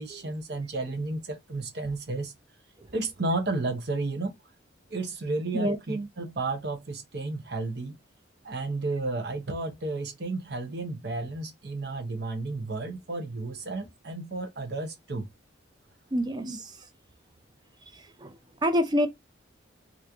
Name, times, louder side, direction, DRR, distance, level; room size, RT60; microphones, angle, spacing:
voice 1, 0.0-2.3 2.9-4.3 4.9-8.0 8.4-15.3 16.4-16.6, right 2 dB, 55° right, 0.8 m, -32 dB
voice 2, 16.1-16.6 17.9-18.4 18.6-19.1, equal, 20° right, 0.5 m, -26 dB
3.0 x 2.5 x 3.4 m
head